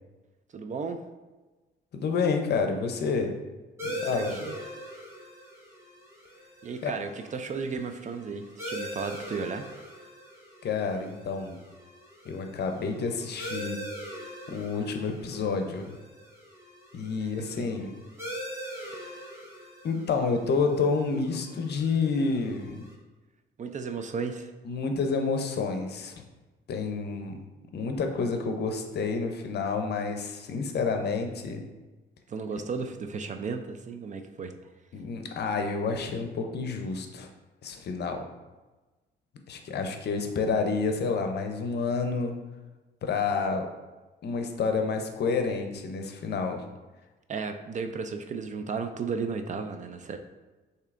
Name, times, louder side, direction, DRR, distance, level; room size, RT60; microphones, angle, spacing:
voice 1, 0.5-1.0 3.9-4.6 6.6-9.7 17.2-17.7 23.6-24.5 32.3-34.5 47.3-50.2, right 5 dB, 40° right, 7 dB, 0.4 m, -34 dB
voice 2, 1.9-3.4 3.8-4.4 6.8-6.9 10.6-11.6 12.2-13.8 14.5-15.9 16.9-17.9 18.8-19.1 19.8-22.8 24.6-26.2 26.7-27.4 27.7-31.6 34.9-37.3 37.6-38.2 39.5-42.4 43.0-43.7 44.2-46.6, left 4 dB, 55° left, 5 dB, 0.6 m, -29 dB
sound 1, 3.8-22.9, equal, 15° right, 1.3 m, -42 dB
6.6 x 2.8 x 2.5 m, 1.2 s
cardioid pair, 90°, 20 cm